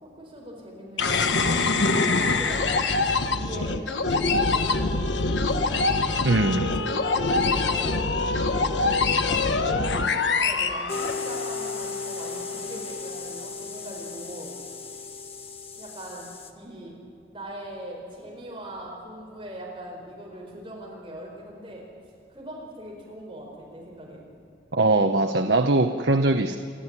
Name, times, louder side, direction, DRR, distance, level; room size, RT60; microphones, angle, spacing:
voice 1, 0.0-1.7 2.0-3.0 3.3-6.0 6.6-14.5 15.7-16.9 17.3-21.9 22.3-24.2 26.0-26.2, right 1 dB, 30° right, -2 dB, 4.6 m, -40 dB
sound 1, 1.0-11.6, left 3 dB, 75° left, 1.2 m, -24 dB
voice 2, 6.2-6.7 24.7-26.6, right 2 dB, 65° right, 6 dB, 1.0 m, -21 dB
sound 2, 10.9-16.5, left 5 dB, 30° left, 1.4 m, -35 dB
28.0 x 12.5 x 9.8 m, 2.5 s
head